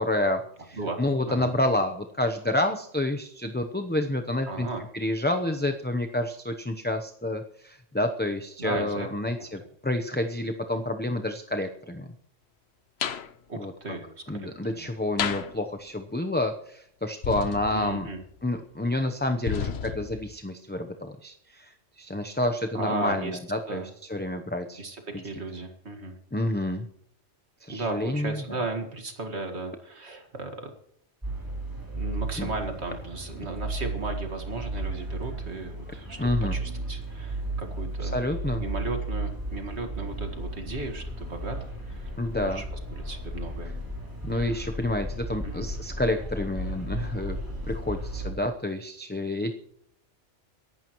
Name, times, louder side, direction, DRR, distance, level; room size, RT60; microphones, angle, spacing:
voice 1, 0.0-4.7 4.9-12.1 13.5-13.7 14.3-18.1 18.4-24.8 25.1-25.2 26.3-26.8 27.6-28.4 32.4-32.5 36.2-36.6 38.0-38.6 42.2-42.6 44.2-47.4 47.7-49.5, left 1 dB, 10° left, 5 dB, 0.6 m, -29 dB
voice 2, 4.5-4.8 8.6-9.1 13.5-14.9 17.7-18.2 22.7-23.4 23.7-23.9 24.8-26.2 27.7-30.7 31.9-36.2 36.5-38.2 38.6-41.6 41.9-42.1 42.4-42.6 42.9-43.7 44.3-44.6 45.4-45.7, right 3 dB, 60° right, 4 dB, 2.1 m, -35 dB
sound 1, 13.0-13.3 15.2-15.6 17.2-18.2 19.5-20.3, left 8 dB, 60° left, 1.0 m, -32 dB
sound 2, 31.2-48.3, right 1 dB, 15° right, 3.1 m, -34 dB
23.5 x 11.5 x 3.1 m, 0.69 s
omnidirectional pair, 1.3 m